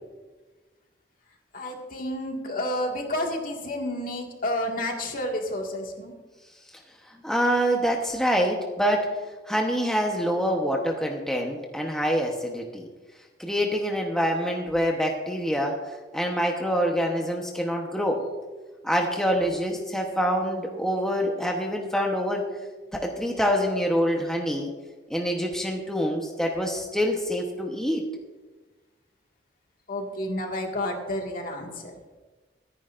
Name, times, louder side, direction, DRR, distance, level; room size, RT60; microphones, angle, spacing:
voice 1, 1.5-6.1 29.9-31.9, left 1 dB, 50° left, 1 dB, 2.0 m, -30 dB
voice 2, 7.2-9.1 9.5-12.9 13.4-15.8 16.1-18.2 18.8-22.5 22.9-24.7 25.1-28.0, equal, 5° left, 0 dB, 1.1 m, -26 dB
25.0 x 9.9 x 2.6 m, 1.3 s
head